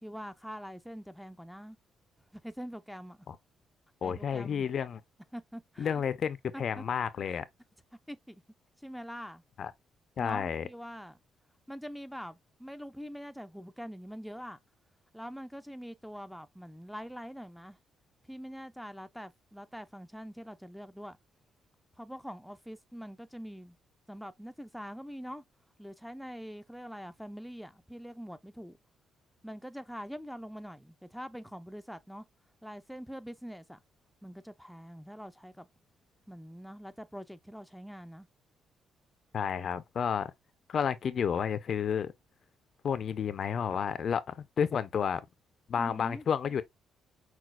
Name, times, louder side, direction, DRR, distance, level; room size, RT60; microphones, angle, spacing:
voice 1, 0.0-1.8 2.3-3.2 4.0-4.7 5.3-6.0 6.5-6.8 7.2-7.4 8.1-8.4 8.8-9.4 10.2-11.2 11.7-14.6 15.1-17.8 18.3-21.2 22.0-23.8 24.1-25.4 25.8-28.8 29.4-32.3 32.6-33.8 34.2-35.7 36.3-38.3 45.8-46.2, equal, ahead, 0.4 m, -44 dB
voice 2, 4.0-5.0 5.8-7.4 9.6-9.7 10.2-10.7 39.3-40.3 40.7-42.1 42.8-45.2 45.7-46.6, left 7 dB, 55° left, 0.4 m, -31 dB
5.9 x 2.3 x 2.2 m
cardioid pair, 90°, 0 cm